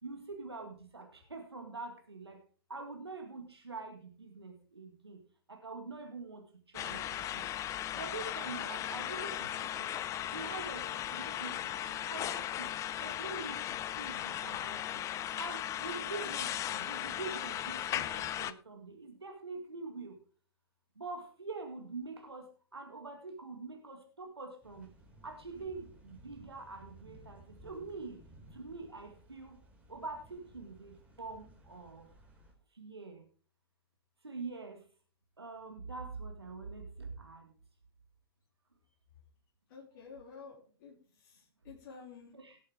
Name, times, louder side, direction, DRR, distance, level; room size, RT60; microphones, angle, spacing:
voice 1, 0.0-2.4 2.7-5.2 5.5-6.4 6.7-7.2 7.9-9.9 10.3-10.9 11.1-12.7 13.0-13.6 14.0-14.8 15.4-20.1 21.0-22.5 22.7-24.9 25.2-28.2 28.5-29.6 29.9-32.1 32.8-33.2 34.2-34.8 35.4-37.5 42.3-42.6, right 3 dB, 90° right, 3 dB, 1.9 m, -45 dB
sound 1, 6.7-18.5, left 12 dB, 25° left, 0.7 m, -37 dB
sound 2, 24.6-32.5, right 1 dB, 10° right, 4.1 m, -58 dB
voice 2, 39.7-42.3, left 5 dB, 50° left, -3 dB, 3.6 m, -51 dB
18.0 x 8.5 x 3.5 m, 0.42 s
figure-of-eight pair, 115°, 13 cm